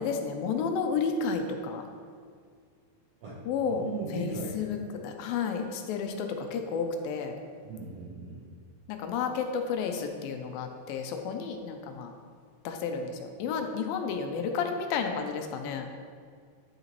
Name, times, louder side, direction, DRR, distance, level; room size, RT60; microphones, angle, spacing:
voice 1, 0.0-1.9 3.5-3.8 4.1-7.4 8.9-12.1 12.6-15.9, left 5 dB, 80° left, 5 dB, 2.4 m, -31 dB
voice 2, 3.2-4.6 7.6-8.5, right 3 dB, 65° right, -5 dB, 1.6 m, -38 dB
10.5 x 6.6 x 3.0 m, 2.1 s
omnidirectional pair, 4.1 m